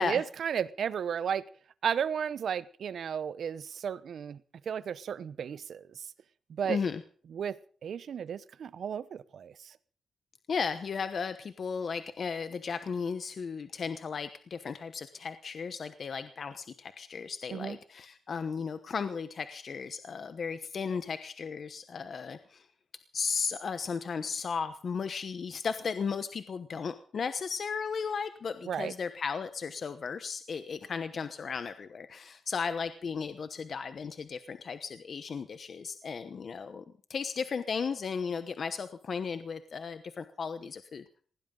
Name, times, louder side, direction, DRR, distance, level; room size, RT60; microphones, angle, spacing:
voice 1, 0.0-1.5 1.8-4.4 4.7-6.0 6.5-6.8 7.3-9.7 17.5-17.8 28.7-28.9, right 8 dB, 60° right, 0.8 m, -34 dB
voice 2, 6.7-7.0 10.5-22.7 23.1-36.8 37.1-41.0, left 5 dB, 45° left, 1.0 m, -35 dB
19.5 x 18.0 x 3.9 m
wide cardioid pair, 150°, 0 cm